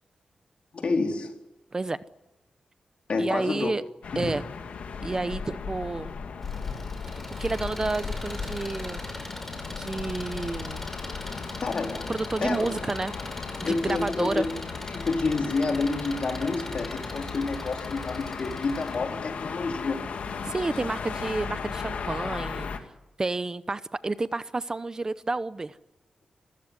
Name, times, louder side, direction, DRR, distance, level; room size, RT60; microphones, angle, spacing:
voice 1, 0.7-1.3 3.1-3.7 4.2-4.3 11.6-12.0 12.4-12.7 13.6-14.5 14.9-20.0, left 3 dB, 60° left, 4.1 m, -28 dB
voice 2, 3.2-3.8 4.2-4.4 5.0-6.1 7.4-9.0 9.8-10.8 11.2-11.3 12.1-13.1 13.6-14.5 20.4-22.7 23.2-25.8, right 3 dB, 30° right, 0.8 m, -30 dB
sound 1, 4.0-22.8, left 5 dB, 80° left, 2.3 m, -36 dB
Engine, 6.4-18.9, left 1 dB, 10° left, 5.2 m, -41 dB
27.5 x 15.5 x 9.9 m
cardioid pair, 85°, 2 cm